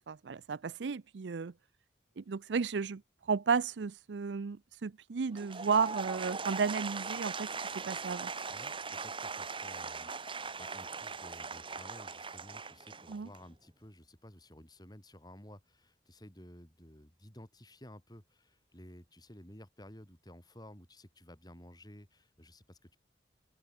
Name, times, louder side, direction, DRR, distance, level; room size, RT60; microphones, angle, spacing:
voice 1, 0.0-1.5 2.2-7.5 7.7-8.3 13.1-13.3, right 5 dB, 80° right, 0.5 m, -33 dB
Applause / Crowd, 5.3-13.5, right 4 dB, 30° right, 3.0 m, -40 dB
voice 2, 8.5-23.0, left 1 dB, 25° left, 4.7 m, -54 dB
open air
head